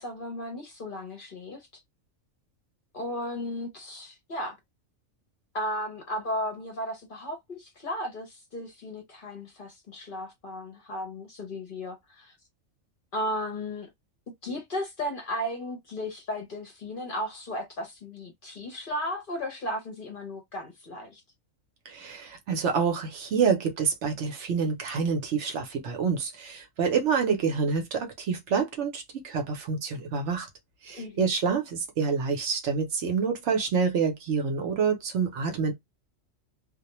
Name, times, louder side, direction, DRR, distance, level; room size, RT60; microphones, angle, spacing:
voice 1, 0.0-1.7 2.9-4.6 5.5-12.4 13.1-13.9 14.4-21.2 30.9-31.3, left 1 dB, 50° left, 0.7 m, -35 dB
voice 2, 21.9-30.5 30.8-35.7, right 5 dB, 65° right, 0.9 m, -27 dB
2.3 x 2.1 x 2.9 m
omnidirectional pair, 1.4 m